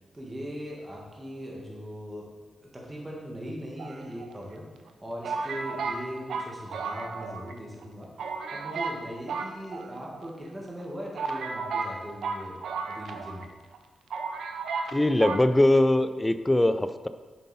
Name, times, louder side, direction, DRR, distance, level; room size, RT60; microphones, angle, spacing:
voice 1, 0.1-2.3 2.6-4.7 5.0-12.6 12.8-13.5, equal, 20° right, -3 dB, 1.6 m, -39 dB
sound 1, 3.8-4.5 5.2-7.5 7.8-7.9 8.2-9.0 9.3-10.3 10.8-10.9 11.2-13.5 13.7-13.8 14.1-14.9 15.2-15.4, right 4 dB, 80° right, 0.6 m, -33 dB
voice 2, 14.9-17.1, left 1 dB, 15° left, 11 dB, 0.5 m, -22 dB
7.4 x 5.4 x 4.2 m, 1.4 s
cardioid pair, 60°, 0 cm